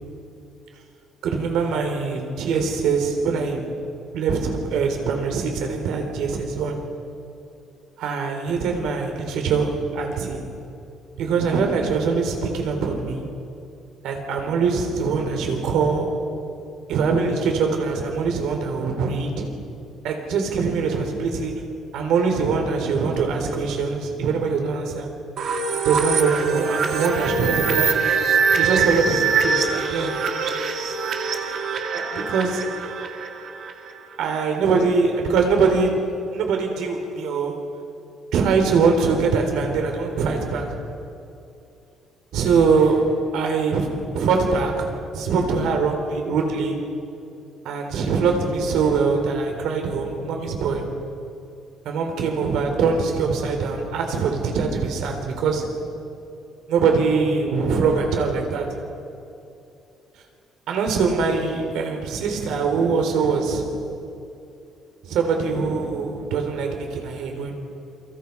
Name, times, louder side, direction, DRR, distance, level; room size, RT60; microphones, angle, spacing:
voice 1, 1.2-3.8 4.1-6.8 8.0-10.5 11.2-13.3 14.0-16.4 16.9-19.5 20.0-25.1 25.8-28.1 28.5-30.2 31.9-32.7 34.2-37.7 38.3-40.8 42.3-46.9 47.6-50.9 51.8-55.8 56.7-58.8 60.7-63.8 65.0-67.5, right 5 dB, 70° right, 3.9 m, -23 dB
sound 1, 25.4-34.0, right 5 dB, 45° right, 1.9 m, -23 dB
28.5 x 24.0 x 4.8 m
cardioid pair, 175°, 0 cm